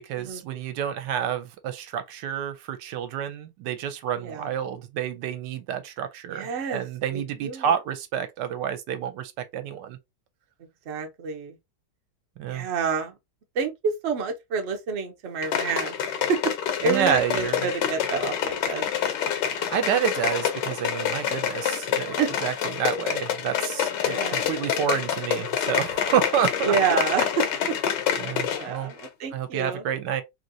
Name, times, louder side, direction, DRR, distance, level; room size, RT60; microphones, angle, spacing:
voice 1, 0.0-10.0 12.4-12.7 16.8-17.6 19.5-22.1 22.4-26.7 28.2-28.9 29.3-30.2, right 9 dB, 85° right, 1.2 m, -29 dB
voice 2, 4.1-4.5 6.3-6.9 7.1-7.7 10.9-11.6 12.5-13.2 13.5-16.4 16.8-18.9 22.2-22.3 24.0-24.5 26.6-27.7 28.5-29.8, right 6 dB, 55° right, 0.8 m, -28 dB
sound 1, 15.4-28.7 29.0-29.1, left 9 dB, 85° left, 1.3 m, -27 dB
3.0 x 2.8 x 2.6 m
omnidirectional pair, 1.8 m